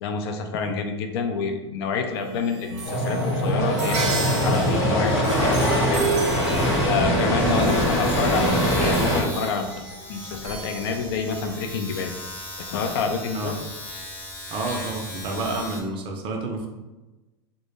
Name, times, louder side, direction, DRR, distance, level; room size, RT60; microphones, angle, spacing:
voice 1, 0.0-6.1 6.8-12.1 12.6-13.5, left 5 dB, 60° left, 5 dB, 0.4 m, -28 dB
sound 1, 2.1-11.6, right 3 dB, 75° right, 0.6 m, -35 dB
sound 2, 2.8-9.2, equal, 40° left, 1.0 m, -22 dB
Domestic sounds home sounds, 4.1-4.2 4.5-15.8, left 1 dB, 10° left, 0.7 m, -38 dB
voice 2, 14.5-16.7, right 2 dB, 35° right, 3 dB, 0.5 m, -30 dB
2.0 x 2.0 x 3.2 m, 1.1 s
hypercardioid pair, 105°, 15 cm